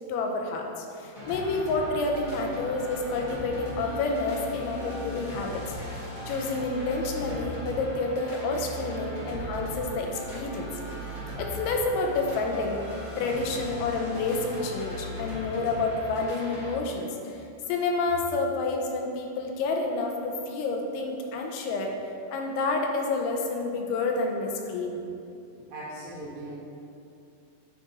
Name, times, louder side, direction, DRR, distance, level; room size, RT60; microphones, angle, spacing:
voice 1, 0.1-5.6 5.9-10.7 11.4-12.8 13.2-21.9 22.3-25.0, left 3 dB, 85° left, 1 dB, 3.1 m, -29 dB
sound 1, 1.1-16.7, equal, 70° left, 1.0 m, -38 dB
voice 2, 25.7-26.5, right 1 dB, 75° right, -8 dB, 2.0 m, -39 dB
9.9 x 3.7 x 4.0 m, 2.6 s
omnidirectional pair, 5.2 m